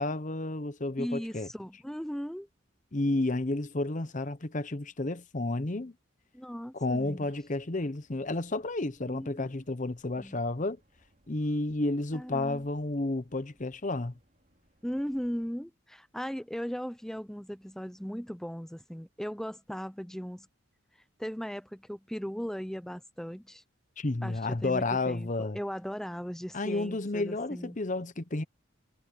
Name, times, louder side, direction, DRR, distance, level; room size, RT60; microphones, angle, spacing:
voice 1, 0.0-1.5 2.9-5.9 6.7-10.8 11.3-14.1 24.0-25.6 26.5-28.4, left 2 dB, 35° left, 0.9 m, -31 dB
voice 2, 1.0-2.5 6.3-7.3 9.0-9.5 10.2-10.4 12.1-12.6 14.8-20.5 21.2-23.6 24.2-27.8, equal, ahead, 0.7 m, -38 dB
sound 1, 7.1-15.5, right 1 dB, 40° right, 5.5 m, -68 dB
head